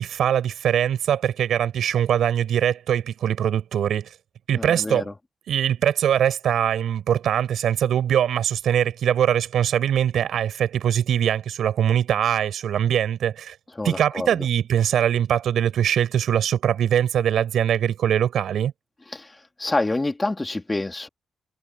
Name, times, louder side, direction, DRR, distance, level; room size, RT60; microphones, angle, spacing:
voice 1, 0.0-4.1 4.5-5.1 5.5-13.6 13.8-18.7, right 9 dB, 85° right, 4.3 m, -22 dB
voice 2, 4.5-5.0 13.8-14.3 19.1-19.3 19.6-21.1, left 2 dB, 15° left, 2.7 m, -27 dB
wide cardioid pair, 130°, 0 cm